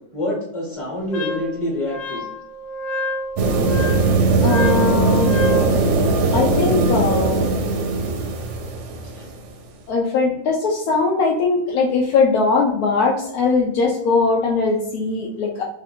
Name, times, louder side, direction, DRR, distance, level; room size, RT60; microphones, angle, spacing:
voice 1, 0.1-2.3 9.1-9.3, left 1 dB, 20° left, -3 dB, 1.3 m, -26 dB
Wind instrument woodwind instrument, 1.1-5.7, equal, 60° left, 1.3 m, -28 dB
sound 1, 3.4-9.3, right 3 dB, 65° right, 0.8 m, -19 dB
voice 2, 4.4-5.3 6.3-7.6 9.9-15.6, left 4 dB, 80° left, -2 dB, 1.1 m, -20 dB
3.2 x 2.6 x 4.2 m, 0.67 s
omnidirectional pair, 1.6 m